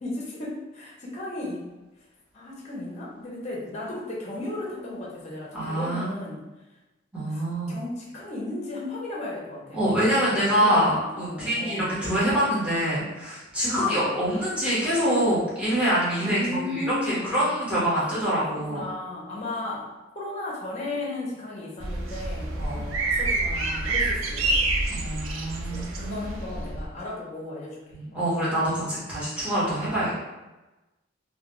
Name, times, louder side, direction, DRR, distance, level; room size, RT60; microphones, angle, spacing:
voice 1, 0.0-1.7 2.3-6.4 7.3-7.4 7.7-12.0 13.6-14.1 16.2-17.5 18.0-18.1 18.4-24.7 25.6-27.8 28.1-28.3, left 2 dB, 35° left, -4 dB, 0.5 m, -35 dB
voice 2, 5.5-6.2 7.1-7.8 9.7-18.8 22.6-22.8 24.9-26.2 27.9-30.2, equal, 5° right, -9 dB, 0.9 m, -25 dB
sound 1, 21.8-26.9, right 2 dB, 80° right, 0.4 m, -27 dB
2.2 x 2.1 x 2.9 m, 1.1 s
head